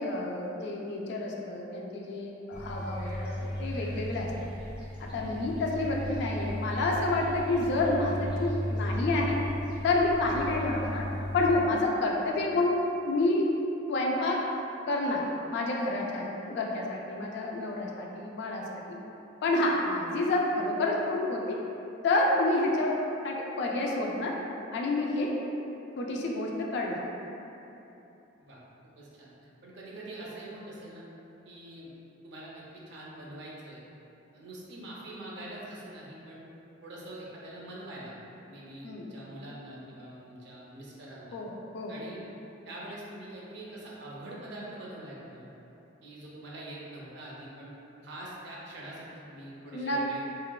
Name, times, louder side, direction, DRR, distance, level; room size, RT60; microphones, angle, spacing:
voice 1, 0.0-4.3 5.0-9.4 9.8-11.0 11.3-12.7 13.0-13.4 13.9-14.4 14.9-15.2 15.5-18.8 19.4-21.6 22.0-22.9 23.2-24.3 24.7-25.3 26.0-27.0 38.8-39.1 41.3-41.9 49.7-50.2, left 2 dB, 60° left, -1 dB, 0.3 m, -29 dB
sound 1, 2.5-11.6, left 1 dB, 5° right, 0.7 m, -35 dB
voice 2, 5.1-5.5 28.4-28.6 29.0-29.3 29.6-31.0 31.5-31.9 32.2-33.8 34.3-36.4 36.8-38.2 38.5-41.4 41.9-42.2 42.7-45.5 46.0-47.7 48.0-50.2, right 1 dB, 60° right, -5 dB, 0.5 m, -44 dB
2.9 x 2.1 x 2.2 m, 3.0 s
head